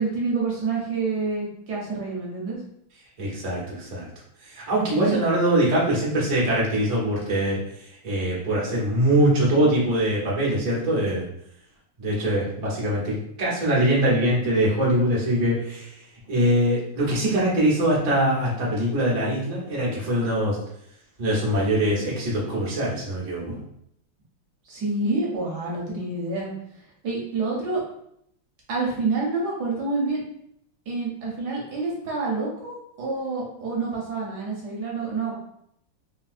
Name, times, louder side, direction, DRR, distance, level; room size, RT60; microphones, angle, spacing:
voice 1, 0.0-2.6 4.9-5.2 24.7-26.5 27.0-27.8 28.7-30.2 30.9-35.3, right 3 dB, 65° right, -3 dB, 1.1 m, -27 dB
voice 2, 3.2-4.1 4.4-7.6 8.0-11.2 12.0-15.9 16.3-20.6 21.2-23.6, right 1 dB, 85° right, -5 dB, 0.3 m, -23 dB
3.5 x 2.7 x 2.4 m, 0.73 s
omnidirectional pair, 2.4 m